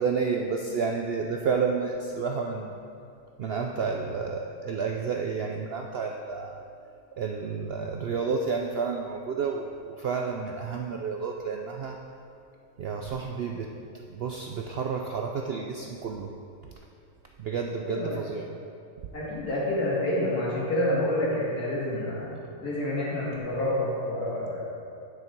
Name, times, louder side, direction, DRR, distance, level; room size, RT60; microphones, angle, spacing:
voice 1, 0.0-2.7 3.4-6.6 7.2-12.0 12.8-13.7 14.1-16.3 17.4-18.4 21.9-22.1, right 5 dB, 75° right, 2 dB, 0.5 m, -30 dB
voice 2, 17.8-18.2 19.1-22.3 22.6-24.6, left 1 dB, 90° left, -6 dB, 2.7 m, -28 dB
9.3 x 6.6 x 4.5 m, 2.5 s
omnidirectional pair, 1.6 m